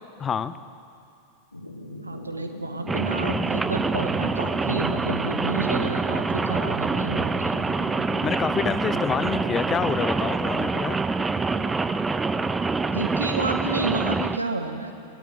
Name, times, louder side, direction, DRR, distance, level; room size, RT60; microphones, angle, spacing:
voice 1, 0.2-0.5 8.2-11.0, left 7 dB, 20° left, 14 dB, 0.9 m, -27 dB
sound 1, 1.5-10.0, left 2 dB, 85° left, 1.7 m, -40 dB
voice 2, 2.0-7.6 12.9-14.9, right 2 dB, 80° right, 5 dB, 1.8 m, -30 dB
Rain, 2.9-14.4, right 4 dB, 10° right, 0.7 m, -26 dB
23.5 x 17.5 x 8.7 m, 2.4 s
figure-of-eight pair, 90°, 0 cm